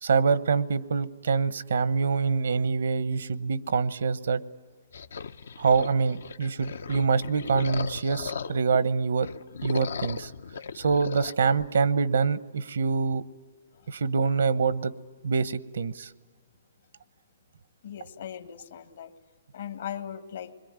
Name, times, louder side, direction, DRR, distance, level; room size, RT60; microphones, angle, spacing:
voice 1, 0.0-4.4 5.6-9.3 9.6-10.3 10.7-13.2 13.9-14.9 15.2-16.1, right 5 dB, 85° right, 17 dB, 0.9 m, -25 dB
sound 1, 4.9-8.8 9.2-11.4, left 6 dB, 85° left, 0.8 m, -37 dB
voice 2, 17.8-19.1 19.5-20.5, left 9 dB, 70° left, 9 dB, 1.8 m, -39 dB
27.5 x 22.0 x 9.6 m, 1.5 s
hypercardioid pair, 155°, 0 cm